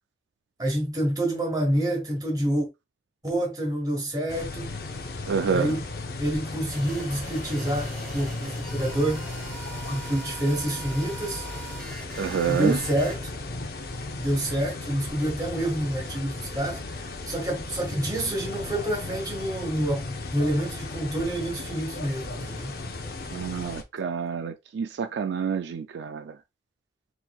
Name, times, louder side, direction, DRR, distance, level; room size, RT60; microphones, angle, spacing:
voice 1, 0.6-2.7 3.2-4.7 5.4-5.8 6.2-9.3 9.9-11.4 12.5-13.2 14.2-22.8, right 1 dB, 20° right, 1.7 m, -28 dB
sound 1, 4.3-23.8, left 2 dB, 55° left, 0.6 m, -36 dB
voice 2, 5.3-5.7 12.2-12.8 23.3-26.3, right 6 dB, 70° right, 0.3 m, -28 dB
sound 2, 6.7-13.2, right 2 dB, ahead, 1.6 m, -42 dB
4.2 x 3.8 x 2.3 m
head